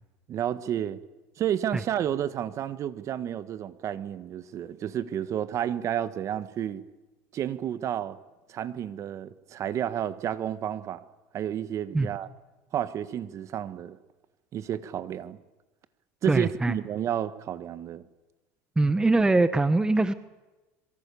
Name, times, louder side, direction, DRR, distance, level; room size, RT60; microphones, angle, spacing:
voice 1, 0.3-1.0 1.4-6.8 7.3-8.2 8.5-11.0 11.3-12.3 12.7-14.0 14.5-15.4 16.2-18.0, right 10 dB, 40° right, 14 dB, 1.5 m, -31 dB
voice 2, 16.3-16.7 18.8-20.1, right 2 dB, 10° right, 13 dB, 1.0 m, -22 dB
26.0 x 23.0 x 7.1 m, 1.1 s
supercardioid pair, 120°, 8 cm